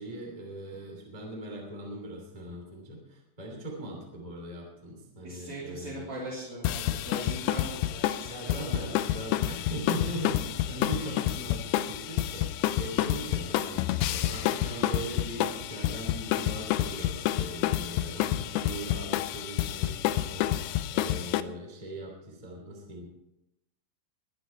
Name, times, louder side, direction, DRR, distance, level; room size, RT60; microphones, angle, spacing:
voice 1, 0.0-6.1 7.2-7.3 8.3-23.1, right 1 dB, 10° right, 0 dB, 2.1 m, -40 dB
voice 2, 5.2-9.2, right 2 dB, 35° right, -6 dB, 3.7 m, -40 dB
sound 1, 6.6-21.4, left 13 dB, 85° left, 2.9 m, -29 dB
21.5 x 9.5 x 4.5 m, 0.87 s
omnidirectional pair, 5.0 m